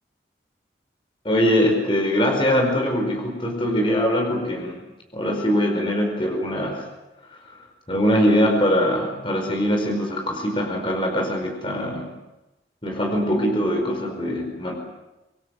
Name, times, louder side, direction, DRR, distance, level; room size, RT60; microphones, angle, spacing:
voice 1, 1.2-4.8 5.1-6.8 7.9-12.1 12.8-14.8, equal, 30° left, 2 dB, 4.9 m, -22 dB
26.0 x 20.5 x 7.8 m, 0.99 s
head